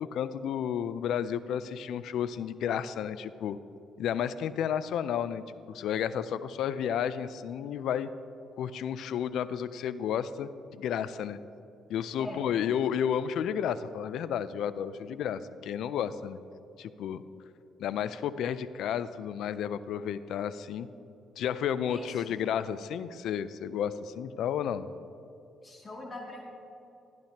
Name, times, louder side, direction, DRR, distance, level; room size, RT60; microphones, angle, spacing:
voice 1, 0.0-3.6 4.0-5.4 5.7-8.1 8.6-11.4 11.9-16.4 16.8-17.2 17.8-20.9 21.4-24.9, left 9 dB, 80° left, 15 dB, 0.4 m, -32 dB
voice 2, 21.9-22.4 25.6-26.4, left 1 dB, 35° left, -2 dB, 2.4 m, -42 dB
14.5 x 10.5 x 2.9 m, 2.8 s
cardioid pair, 90°, 0 cm